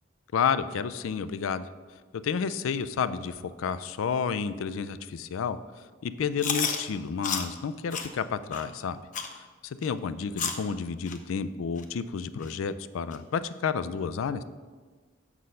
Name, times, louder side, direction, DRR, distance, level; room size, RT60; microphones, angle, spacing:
voice 1, 0.3-1.7 2.2-5.6 6.0-9.0 9.6-14.4, left 6 dB, 85° left, 14 dB, 0.4 m, -30 dB
Chewing mastication, 6.4-6.8 7.2-7.5 7.9-8.1 8.5-8.6 9.1-9.3 9.8-9.9 10.4-10.6 11.1-11.2 11.8-11.9 12.4-12.5 13.1-13.2, left 6 dB, 40° left, 0.6 m, -30 dB
6.4 x 6.1 x 5.5 m, 1.5 s
head